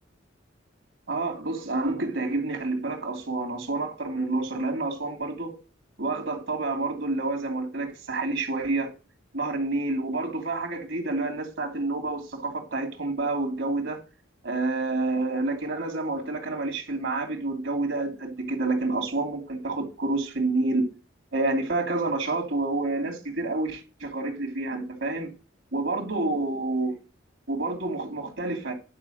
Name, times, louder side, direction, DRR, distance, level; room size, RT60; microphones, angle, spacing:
voice 1, 1.1-5.6 6.0-8.9 9.3-14.0 14.4-20.9 21.3-25.3 25.7-27.0 27.5-28.7, right 2 dB, 80° right, 2.7 m, -28 dB
10.5 x 4.9 x 7.8 m
head